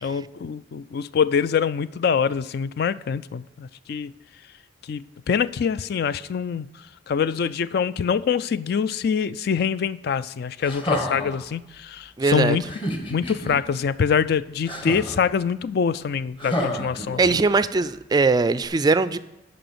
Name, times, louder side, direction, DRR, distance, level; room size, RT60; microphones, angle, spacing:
voice 1, 0.0-4.1 4.9-6.7 7.1-12.6 13.1-17.2, left 6 dB, 60° left, 0.3 m, -24 dB
sound 1, 10.6-11.4 12.6-13.6 14.7-15.3 16.4-17.6 18.6-18.7, left 1 dB, 30° left, 1.3 m, -29 dB
voice 2, 12.2-12.6 17.2-19.2, right 3 dB, 20° right, 0.3 m, -20 dB
10.0 x 5.6 x 6.8 m
head